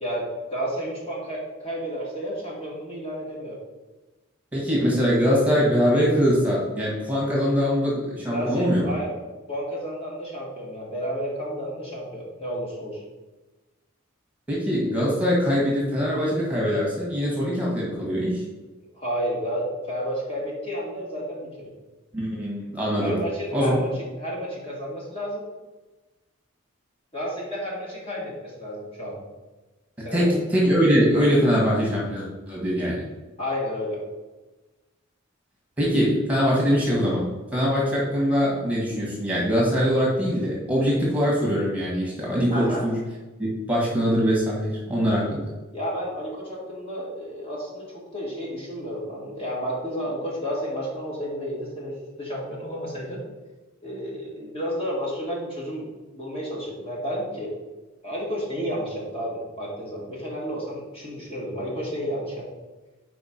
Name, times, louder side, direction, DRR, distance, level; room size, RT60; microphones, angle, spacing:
voice 1, 0.5-3.6 8.3-9.1 9.5-13.0 18.9-21.7 23.0-25.4 27.1-29.2 30.0-30.3 33.4-34.0 42.5-42.8 45.7-51.9 52.2-53.2 53.8-57.5 58.0-62.5, equal, 25° left, -4 dB, 1.7 m, -31 dB
voice 2, 4.5-8.9 14.5-18.4 22.1-23.2 23.5-23.8 30.0-33.1 35.8-37.3 37.5-43.0 43.4-45.5, equal, 5° right, -5 dB, 1.5 m, -22 dB
4.8 x 4.6 x 5.7 m, 1.2 s
head